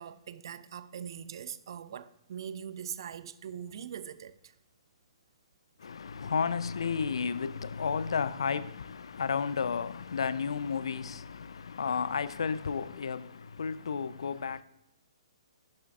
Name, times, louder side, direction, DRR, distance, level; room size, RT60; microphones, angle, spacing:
voice 1, 0.0-4.5, right 8 dB, 50° right, 0.5 m, -42 dB
voice 2, 5.8-14.6, left 6 dB, 65° left, 0.5 m, -32 dB
11.0 x 10.5 x 2.5 m
figure-of-eight pair, 125°, 3 cm